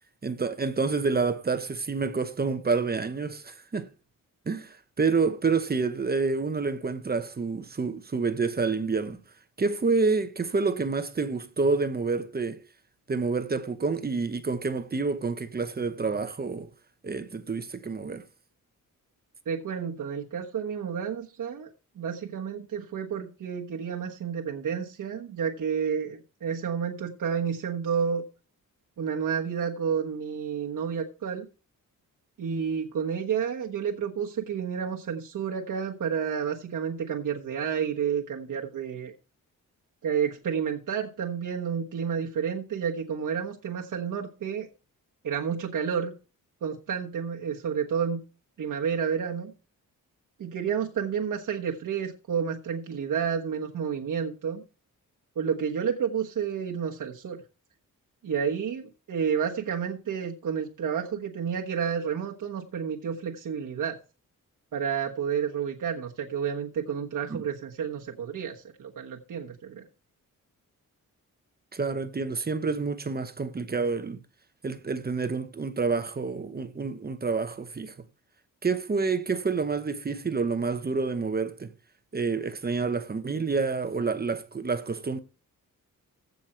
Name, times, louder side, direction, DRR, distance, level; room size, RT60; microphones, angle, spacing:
voice 1, 0.2-3.9 4.5-9.2 9.6-12.6 13.1-16.7 17.0-18.2 67.3-67.4 71.7-74.2 74.6-77.9 78.6-81.7 82.1-85.2, right 4 dB, 30° right, 0.9 m, -28 dB
voice 2, 19.4-21.7 22.0-28.2 29.0-31.5 32.4-39.1 40.0-44.7 45.2-46.1 46.6-48.2 48.6-49.5 50.4-54.6 55.3-57.4 58.2-64.0 64.7-69.9, right 7 dB, 70° right, 1.3 m, -30 dB
15.5 x 5.3 x 4.4 m
wide cardioid pair, 125°, 34 cm